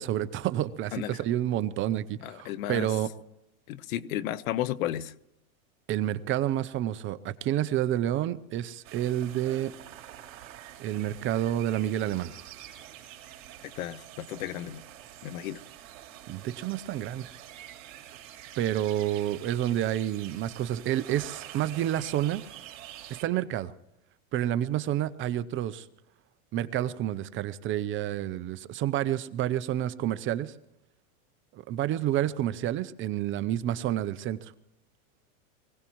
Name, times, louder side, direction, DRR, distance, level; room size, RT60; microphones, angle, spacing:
voice 1, 0.0-3.1 5.9-9.7 10.8-12.3 16.3-17.3 18.6-22.4 23.2-23.7 24.3-25.9 26.5-30.5 31.5-34.5, right 12 dB, 30° right, 0.6 m, -29 dB
voice 2, 2.2-2.9 3.7-5.1 13.8-14.8 15.2-15.6, left 12 dB, 70° left, 1.0 m, -33 dB
sound 1, 8.8-23.2, right 12 dB, 65° right, 3.4 m, -47 dB
24.5 x 17.0 x 3.1 m
supercardioid pair, 135°, 42 cm